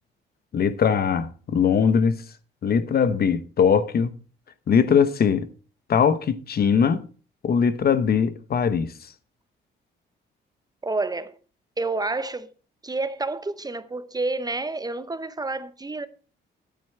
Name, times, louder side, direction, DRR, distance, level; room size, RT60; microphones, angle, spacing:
voice 1, 0.5-2.2 2.6-4.1 4.7-5.5 5.9-7.1 7.4-8.9, left 7 dB, 50° left, 0.9 m, -21 dB
voice 2, 10.8-11.4 11.8-12.5 12.8-16.1, right 3 dB, 20° right, 0.7 m, -29 dB
9.3 x 8.7 x 4.5 m
cardioid pair, 90°, 20 cm